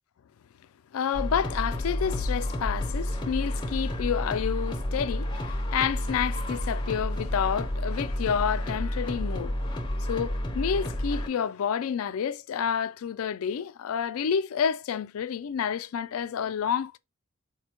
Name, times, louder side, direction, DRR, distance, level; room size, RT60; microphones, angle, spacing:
voice 1, 0.9-9.6 10.1-17.0, left 7 dB, 85° left, 0.4 m, -29 dB
sound 1, 1.1-11.3, left 1 dB, 20° left, 0.6 m, -30 dB
sound 2, 1.7-4.6, left 5 dB, 40° right, 0.5 m, -39 dB
4.2 x 2.1 x 2.9 m
head